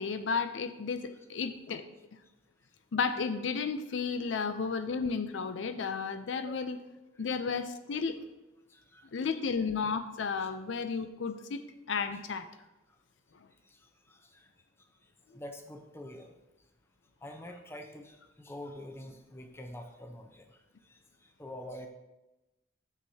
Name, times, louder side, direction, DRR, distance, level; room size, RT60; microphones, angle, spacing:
voice 1, 0.0-1.8 2.9-6.8 7.2-8.2 9.1-11.6 11.9-12.5, left 5 dB, 75° left, 10 dB, 0.5 m, -33 dB
voice 2, 8.7-9.1 10.4-10.5 13.6-14.5 15.3-16.3 17.2-20.6 20.8-21.9, left 1 dB, 15° left, 4 dB, 0.7 m, -46 dB
10.5 x 6.4 x 2.8 m, 1.0 s
head